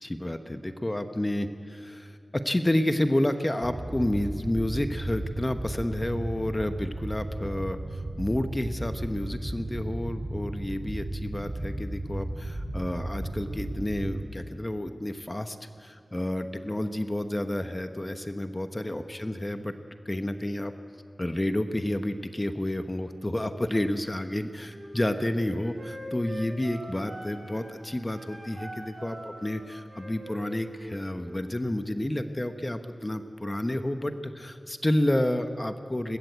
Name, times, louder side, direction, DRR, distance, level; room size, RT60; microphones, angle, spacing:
voice 1, 0.0-19.7 20.0-20.7 21.2-36.2, left 1 dB, 25° left, 8 dB, 1.2 m, -30 dB
sound 1, 3.6-14.2, right 1 dB, 40° right, 5.3 m, -35 dB
Wind instrument woodwind instrument, 24.6-27.7 28.1-31.5, right 1 dB, 65° right, 7.8 m, -43 dB
22.0 x 19.0 x 8.2 m, 2.3 s
wide cardioid pair, 50°, 0 cm